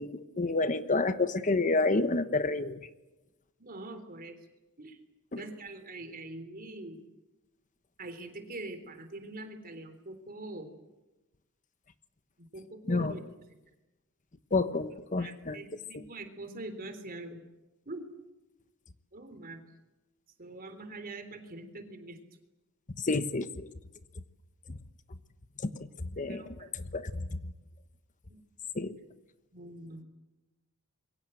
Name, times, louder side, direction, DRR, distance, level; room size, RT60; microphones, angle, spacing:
voice 1, 0.0-2.8 5.3-5.4 12.9-13.1 14.5-15.6 23.0-23.7 25.6-25.9 26.2-27.4 28.7-29.0, left 3 dB, 35° left, 11 dB, 1.1 m, -29 dB
voice 2, 3.6-4.3 4.8-5.0 5.4-7.0 8.0-10.7 12.5-13.2 15.2-17.4 17.9-18.1 19.1-19.6 20.4-22.2 26.3-26.7 29.5-30.0, right 2 dB, 45° right, 8 dB, 3.5 m, -43 dB
26.0 x 23.0 x 7.8 m, 1.0 s
head